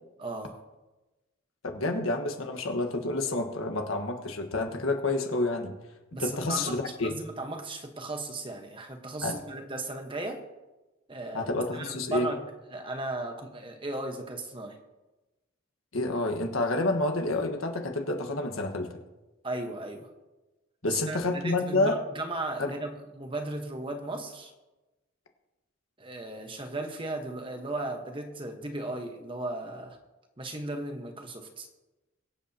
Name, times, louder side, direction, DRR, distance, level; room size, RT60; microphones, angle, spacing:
voice 1, 0.2-0.6 6.1-10.4 11.1-14.8 19.4-20.1 20.9-24.5 26.0-30.0 30.4-31.7, right 2 dB, 25° right, 4 dB, 1.2 m, -36 dB
voice 2, 1.6-5.7 6.2-7.1 9.2-9.4 11.3-12.3 15.9-19.0 20.8-22.0 22.6-22.7, left 2 dB, 85° left, 4 dB, 1.5 m, -29 dB
23.5 x 7.9 x 2.9 m, 1.1 s
head